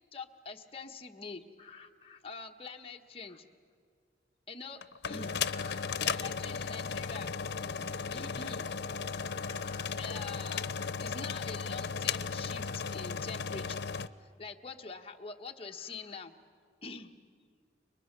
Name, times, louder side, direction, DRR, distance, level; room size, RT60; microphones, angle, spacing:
voice 1, 0.1-3.4 4.5-7.3 8.1-8.7 9.1-13.7 14.2-16.4 16.8-17.1, left 4 dB, 30° left, 3 dB, 1.2 m, -45 dB
sound 1, 4.8-14.1, left 6 dB, 80° left, 0.7 m, -35 dB
29.5 x 23.5 x 6.7 m, 2.1 s
head